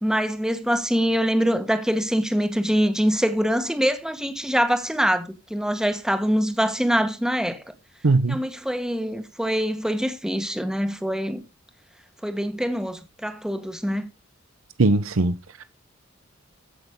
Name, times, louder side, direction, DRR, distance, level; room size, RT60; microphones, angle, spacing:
voice 1, 0.0-7.6 8.3-11.4 12.2-14.1, equal, 5° right, 1.4 m, -24 dB
voice 2, 8.0-8.4 14.8-15.3, right 2 dB, 85° right, 0.8 m, -19 dB
15.0 x 6.1 x 3.7 m
head